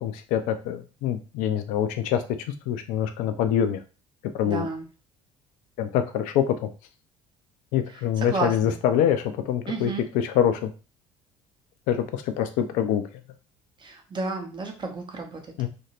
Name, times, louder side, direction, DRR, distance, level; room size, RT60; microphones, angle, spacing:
voice 1, 0.0-2.2 2.7-3.8 4.3-4.7 5.8-6.5 7.7-10.7 11.9-13.0 15.6-15.7, left 9 dB, 55° left, 9 dB, 0.4 m, -25 dB
voice 2, 4.4-4.9 8.2-8.8 9.7-10.1 13.8-15.5, right 3 dB, 30° right, 4 dB, 0.8 m, -32 dB
2.8 x 2.5 x 2.9 m, 0.33 s
figure-of-eight pair, 55°, 16 cm